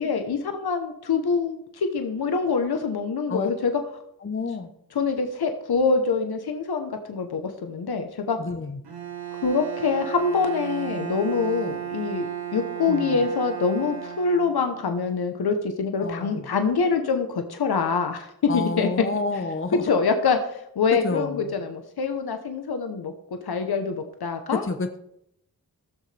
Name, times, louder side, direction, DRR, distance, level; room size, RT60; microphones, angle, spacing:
voice 1, 0.0-3.7 4.9-8.4 9.4-18.3 18.5-18.9 19.7-20.4 20.8-23.1 23.4-24.6, left 5 dB, 75° left, 6 dB, 1.0 m, -25 dB
voice 2, 4.2-4.7 8.4-8.8 12.9-13.2 16.0-16.5 18.5-19.9 20.9-21.6 24.5-25.0, left 4 dB, 35° left, 7 dB, 1.0 m, -29 dB
Bowed string instrument, 8.8-15.0, right 11 dB, 85° right, 1.4 m, -34 dB
15.5 x 6.6 x 3.4 m, 0.76 s
cardioid pair, 45°, 38 cm